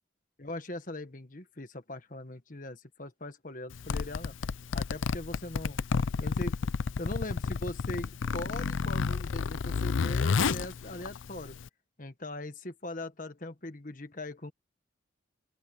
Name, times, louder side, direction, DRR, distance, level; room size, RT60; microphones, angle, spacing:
voice 1, 0.4-4.3 4.7-5.8 6.2-6.6 7.0-11.6 12.0-14.5, left 1 dB, 40° left, 1.6 m, -40 dB
Zipper (clothing), 3.7-11.7, left 5 dB, 80° left, 0.5 m, -31 dB
open air
head